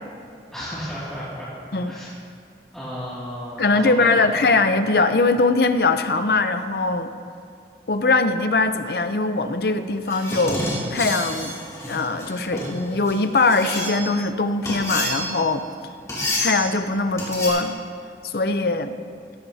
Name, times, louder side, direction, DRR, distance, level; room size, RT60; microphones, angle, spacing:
voice 1, 0.5-1.5 1.9-2.1 2.7-4.4, equal, 5° left, -11 dB, 2.3 m, -33 dB
voice 2, 3.6-7.1 7.9-10.6 10.9-11.6 11.9-15.7 16.4-17.7 18.2-19.0, left 3 dB, 60° left, 9 dB, 0.6 m, -21 dB
sound 1, 10.0-14.2 14.7-15.5 16.1-16.7 17.2-17.5, left 1 dB, 20° left, 3.3 m, -29 dB
17.0 x 15.5 x 2.8 m, 2.5 s
head